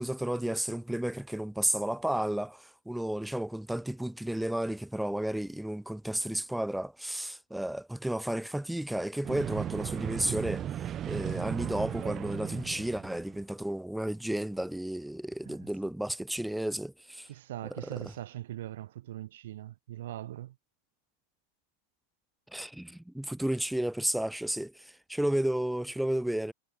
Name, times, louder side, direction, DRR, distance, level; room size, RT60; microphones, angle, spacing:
voice 1, 0.0-17.3 17.8-17.9 22.5-26.5, right 1 dB, ahead, 1.2 m, -32 dB
sound 1, 9.2-13.4, right 10 dB, 30° right, 0.6 m, -36 dB
voice 2, 17.3-20.6, right 13 dB, 55° right, 1.2 m, -41 dB
figure-of-eight pair, 90°, 0 cm